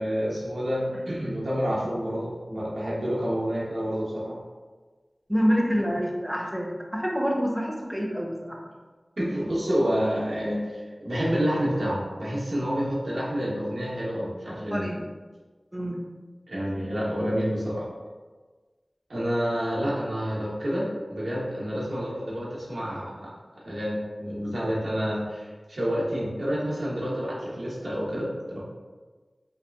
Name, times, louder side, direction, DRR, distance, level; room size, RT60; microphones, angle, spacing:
voice 1, 0.0-4.4 9.2-14.9 16.5-17.9 19.1-23.3 23.6-28.6, equal, 85° right, -6 dB, 0.8 m, -28 dB
voice 2, 5.3-8.6 14.5-15.0 15.7-16.0, equal, 5° right, -1 dB, 0.5 m, -27 dB
2.8 x 2.2 x 2.2 m, 1.3 s
wide cardioid pair, 45°, 0 cm